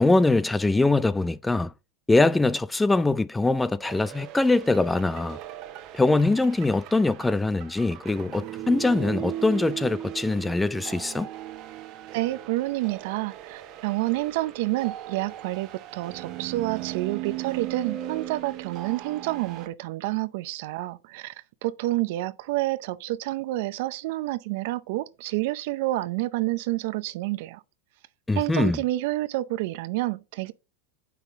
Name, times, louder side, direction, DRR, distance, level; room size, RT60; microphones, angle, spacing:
voice 1, 0.0-1.7 2.1-5.4 5.9-11.3 28.3-28.8, left 2 dB, 10° left, 0.4 m, -23 dB
sound 1, 3.8-19.7, right 13 dB, 50° right, 1.1 m, -38 dB
voice 2, 12.1-21.3 21.6-27.6 28.4-30.5, right 18 dB, 65° right, 0.6 m, -29 dB
8.1 x 5.8 x 3.7 m
hypercardioid pair, 110°, 0 cm